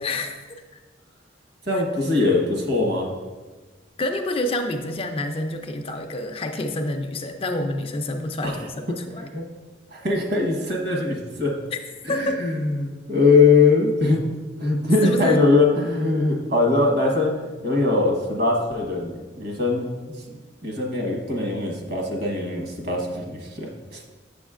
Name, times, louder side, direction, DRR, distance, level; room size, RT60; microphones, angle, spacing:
voice 1, 0.0-0.6 1.7-1.8 4.0-9.3 11.7-11.8 12.1-12.4 15.0-15.4, left 1 dB, 30° left, 5 dB, 0.4 m, -28 dB
voice 2, 1.6-3.1 8.4-8.6 9.3-9.5 9.9-11.5 12.0-14.2 14.6-24.0, left 3 dB, 60° right, 0 dB, 1.2 m, -21 dB
7.1 x 7.1 x 2.4 m, 1.3 s
head